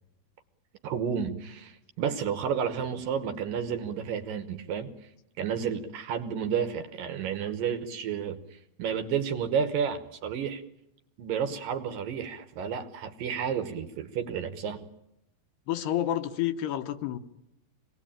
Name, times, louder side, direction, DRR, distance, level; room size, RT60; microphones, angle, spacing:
voice 1, 0.8-4.9 5.4-10.6 11.2-14.9, right 7 dB, 65° right, 8 dB, 2.4 m, -31 dB
voice 2, 15.7-17.2, left 12 dB, 75° left, 8 dB, 3.2 m, -29 dB
26.0 x 19.5 x 8.9 m, 0.86 s
omnidirectional pair, 4.8 m